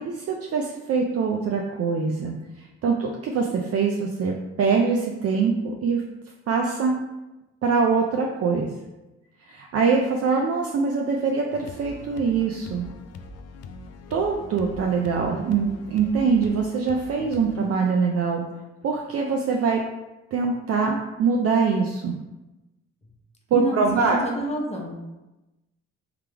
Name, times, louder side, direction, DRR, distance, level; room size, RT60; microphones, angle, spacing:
voice 1, 0.0-6.0 6.5-7.0 7.6-8.7 9.5-12.8 14.1-18.4 18.8-19.8 20.3-22.2 23.5-24.2, right 5 dB, 50° right, 1 dB, 0.5 m, -23 dB
sound 1, 11.5-17.7, left 3 dB, 55° left, 0.5 m, -42 dB
voice 2, 24.0-25.0, equal, 20° left, -1 dB, 0.9 m, -28 dB
3.5 x 3.3 x 3.4 m, 1.0 s
cardioid pair, 90°, 30 cm